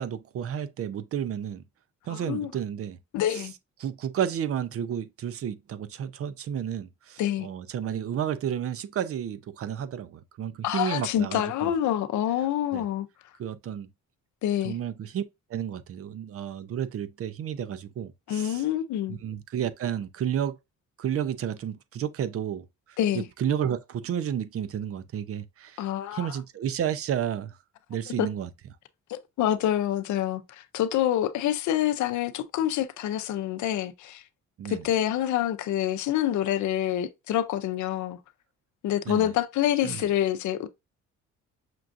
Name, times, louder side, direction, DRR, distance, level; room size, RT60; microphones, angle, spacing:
voice 1, 0.0-1.6 2.1-3.0 3.3-3.4 3.8-11.7 12.7-12.8 13.4-13.9 14.6-15.2 15.5-18.6 19.1-20.6 21.0-25.8 26.1-27.6 27.9-28.5 34.6-34.9 39.1-39.3 39.8-40.1, right 9 dB, 50° right, 0.5 m, -31 dB
voice 2, 2.1-2.5 3.1-3.5 7.2-7.5 10.6-13.1 14.4-14.7 18.3-19.2 23.0-23.3 25.8-26.3 28.2-28.3 29.1-34.2 34.7-38.2 38.8-40.7, left 11 dB, 75° left, 0.6 m, -27 dB
5.9 x 2.4 x 2.5 m
cardioid pair, 90°, 30 cm